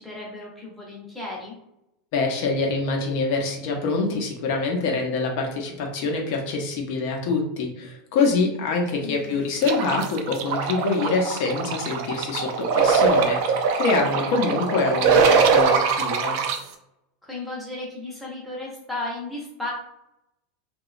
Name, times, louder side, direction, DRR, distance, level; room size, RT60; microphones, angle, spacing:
voice 1, 0.0-1.5 9.0-9.4 13.8-14.0 17.2-19.7, left 2 dB, ahead, -5 dB, 0.7 m, -34 dB
voice 2, 2.1-16.4, left 3 dB, 55° left, 1 dB, 0.6 m, -25 dB
sound 1, 9.6-16.6, right 5 dB, 60° right, 0.3 m, -22 dB
2.9 x 2.2 x 2.4 m, 0.83 s
supercardioid pair, 160°, 0 cm